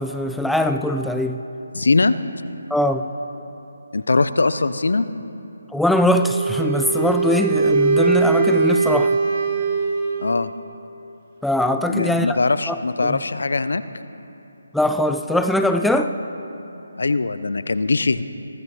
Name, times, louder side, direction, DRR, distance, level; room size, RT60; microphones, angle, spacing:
voice 1, 0.0-1.4 2.7-3.0 5.7-9.2 11.4-12.4 12.7-12.8 13.0-13.2 14.7-16.1, left 1 dB, ahead, 7 dB, 0.4 m, -21 dB
voice 2, 1.7-2.2 3.9-5.1 10.2-10.5 11.9-13.8 17.0-18.2, left 3 dB, 65° left, 13 dB, 0.6 m, -21 dB
Wind instrument woodwind instrument, 6.1-10.5, right 4 dB, 40° right, 1.3 m, -20 dB
23.5 x 16.0 x 3.2 m, 3.0 s
figure-of-eight pair, 150°, 0 cm